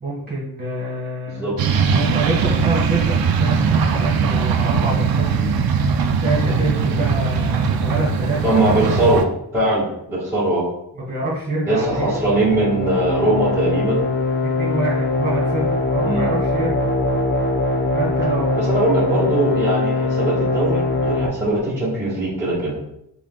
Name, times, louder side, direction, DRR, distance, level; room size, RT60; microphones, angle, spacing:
voice 1, 0.0-8.8 10.9-12.2 14.6-16.8 17.9-19.2, right 2 dB, 25° right, -4 dB, 1.7 m, -26 dB
voice 2, 1.3-1.8 8.4-9.2 9.5-10.6 11.7-14.0 16.0-16.3 18.5-22.9, right 1 dB, 5° right, -9 dB, 1.3 m, -21 dB
sound 1, 1.6-9.2, right 5 dB, 65° right, 0.5 m, -20 dB
sound 2, 11.9-21.3, left 2 dB, 30° left, 0.6 m, -22 dB
6.0 x 3.6 x 2.2 m, 0.80 s
wide cardioid pair, 165°, 38 cm